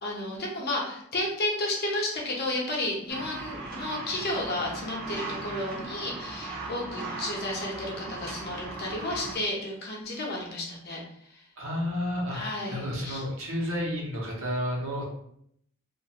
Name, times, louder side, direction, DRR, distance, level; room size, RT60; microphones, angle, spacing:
voice 1, 0.0-11.0 11.3-11.4 12.3-13.2, left 1 dB, 50° left, -2 dB, 0.7 m, -32 dB
sound 1, 3.1-9.3, right 2 dB, 45° right, 0.5 m, -38 dB
voice 2, 11.6-15.0, left 1 dB, 75° right, -3 dB, 0.9 m, -31 dB
2.4 x 2.3 x 2.9 m, 0.70 s
head